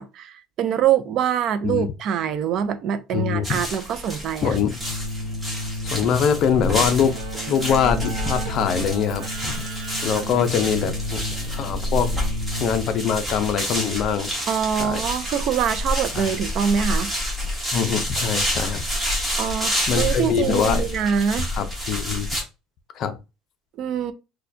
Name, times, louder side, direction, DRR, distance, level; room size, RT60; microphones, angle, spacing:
voice 1, 0.0-4.5 14.5-17.1 19.4-21.5 23.8-24.1, right 8 dB, 50° right, 0.4 m, -24 dB
voice 2, 3.1-3.6 4.4-4.7 5.8-7.2 7.5-9.5 10.0-11.2 11.5-12.1 12.6-14.3 14.8-15.0 16.1-16.4 17.7-18.8 19.9-20.8 21.5-22.3 23.0-23.1, left 7 dB, 50° left, 0.5 m, -23 dB
sound 1, 3.4-22.4, equal, 10° right, 1.3 m, -28 dB
Keyboard (musical), 4.8-13.1, equal, 75° right, 1.2 m, -32 dB
4.3 x 2.2 x 2.6 m
cardioid pair, 150°, 0 cm